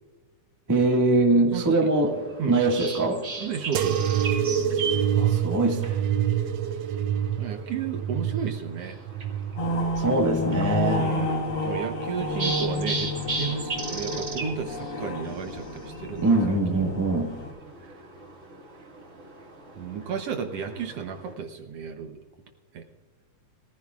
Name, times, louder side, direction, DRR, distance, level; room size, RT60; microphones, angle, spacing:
voice 1, 0.7-3.2 5.2-6.0 10.0-11.1 16.2-17.3, right 2 dB, 10° right, 1 dB, 0.8 m, -23 dB
voice 2, 1.5-1.9 2.4-2.6 3.4-4.3 7.4-9.0 11.0-17.0 17.8-17.9 19.8-22.2 22.7-22.8, right 7 dB, 65° right, 6 dB, 1.7 m, -33 dB
sound 1, 1.9-21.3, right 3 dB, 30° right, 1.8 m, -38 dB
sound 2, 3.7-11.0 11.5-12.3 13.0-13.5 14.5-14.6, right 9 dB, 90° right, 1.3 m, -27 dB
sound 3, 9.6-17.5, left 1 dB, 45° left, 2.0 m, -30 dB
21.5 x 15.0 x 2.4 m, 1.5 s
omnidirectional pair, 3.4 m